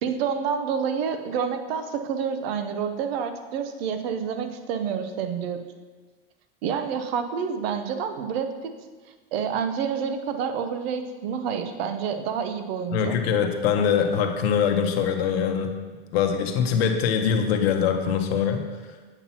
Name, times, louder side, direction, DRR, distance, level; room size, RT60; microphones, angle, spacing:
voice 1, 0.0-5.6 6.6-8.7 9.3-13.2, right 7 dB, 70° right, 7 dB, 0.7 m, -28 dB
voice 2, 12.9-15.8 16.1-18.6, left 7 dB, 80° left, 5 dB, 0.9 m, -23 dB
8.0 x 2.9 x 5.6 m, 1.4 s
supercardioid pair, 145°, 31 cm